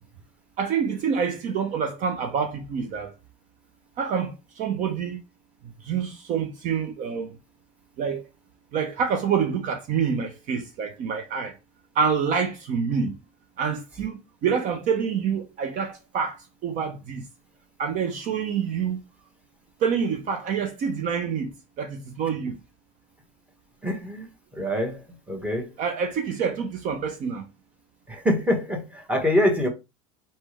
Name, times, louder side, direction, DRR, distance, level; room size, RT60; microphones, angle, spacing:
voice 1, 0.6-3.1 4.0-5.2 5.8-7.4 8.0-8.2 8.7-11.6 11.9-13.2 13.6-17.2 17.8-19.0 19.8-22.6 25.8-27.5, right 6 dB, 45° right, 0.7 m, -27 dB
voice 2, 23.8-25.7 28.1-29.7, left 1 dB, 5° right, 1.4 m, -25 dB
4.2 x 3.4 x 3.2 m
supercardioid pair, 120°, 17 cm